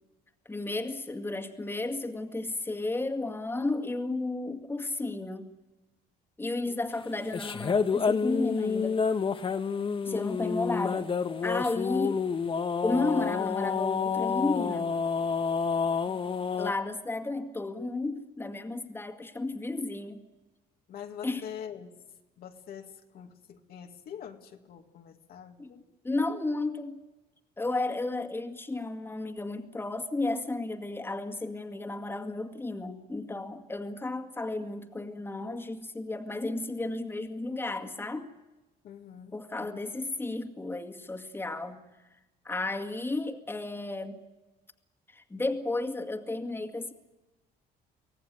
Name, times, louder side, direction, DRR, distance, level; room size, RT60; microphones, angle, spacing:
voice 1, 0.5-5.5 6.4-9.1 10.0-11.1 11.4-12.2 12.8-14.9 16.6-20.2 21.2-21.4 25.6-25.7 26.0-27.0 27.6-38.3 39.3-41.8 42.4-44.2 45.1-46.9, left 2 dB, 15° left, 4 dB, 2.2 m, -33 dB
sound 1, 7.3-16.7, left 5 dB, 30° left, 1.3 m, -29 dB
voice 2, 16.1-16.6 20.9-22.0 22.4-25.8 38.8-39.3 39.6-39.8, left 8 dB, 65° left, 4 dB, 2.2 m, -45 dB
24.5 x 17.5 x 9.6 m, 1.1 s
cardioid pair, 110°, 17 cm